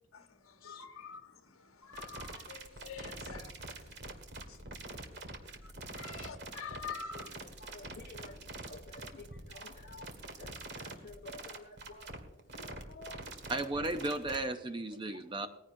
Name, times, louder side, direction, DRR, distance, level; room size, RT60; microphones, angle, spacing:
voice 1, 0.1-4.1 4.5-4.6 5.6-7.3 10.4-10.5 12.5-13.2 15.4-15.5, left 5 dB, 70° left, 1.4 m, -47 dB
sound 1, 1.9-14.4, right 2 dB, 50° right, 1.8 m, -45 dB
voice 2, 4.4-4.8 6.1-6.2 7.1-12.7 13.5-13.6 15.1-15.2, left 3 dB, 45° left, 1.2 m, -53 dB
voice 3, 13.5-15.5, right 2 dB, 20° right, 0.6 m, -35 dB
19.5 x 15.0 x 2.7 m
head